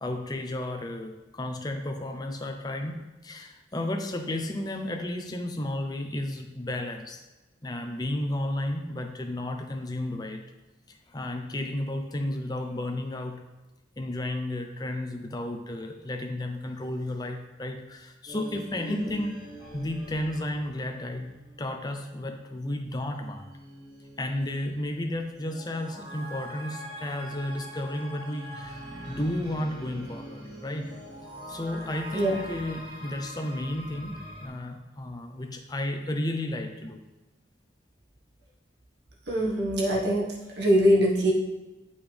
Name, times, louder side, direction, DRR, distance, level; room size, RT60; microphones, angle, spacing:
voice 1, 0.0-7.2 7.6-10.4 10.9-13.4 14.0-19.4 19.7-23.5 24.2-30.9 31.5-37.0, left 1 dB, 20° left, 4 dB, 0.6 m, -33 dB
sound 1, 18.3-21.7 22.0-22.1 23.1-34.5, equal, 25° right, 1.5 m, -43 dB
voice 2, 39.3-40.3 40.6-41.3, equal, 65° right, -4 dB, 1.6 m, -23 dB
8.0 x 5.5 x 3.4 m, 1.1 s
head